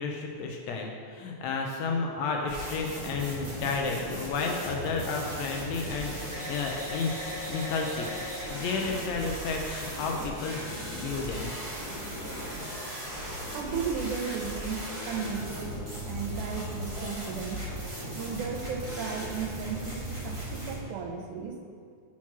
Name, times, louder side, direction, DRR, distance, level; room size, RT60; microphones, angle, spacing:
voice 1, 0.0-8.1 8.5-11.5, left 4 dB, 75° left, 1 dB, 1.7 m, -32 dB
sound 1, 2.5-20.8, equal, 20° right, 0.8 m, -37 dB
voice 2, 13.5-17.6 18.1-21.6, right 6 dB, 85° right, 3 dB, 2.2 m, -35 dB
6.0 x 4.4 x 5.8 m, 2.1 s
omnidirectional pair, 3.5 m